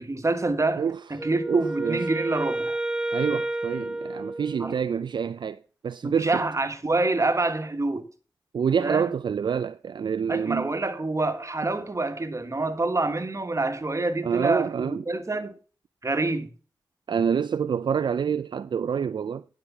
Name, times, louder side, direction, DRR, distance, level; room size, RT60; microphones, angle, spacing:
voice 1, 0.0-2.8 4.6-4.8 6.0-8.1 8.8-9.1 10.3-15.6 16.0-16.5, right 2 dB, 40° right, 1.4 m, -27 dB
Wind instrument woodwind instrument, 1.2-5.1, right 1 dB, 10° right, 0.8 m, -31 dB
voice 2, 1.5-2.1 3.1-6.5 8.5-10.7 14.2-15.0 17.1-19.4, right 7 dB, 65° right, 0.3 m, -27 dB
11.0 x 5.0 x 7.0 m
cardioid pair, 50°, 8 cm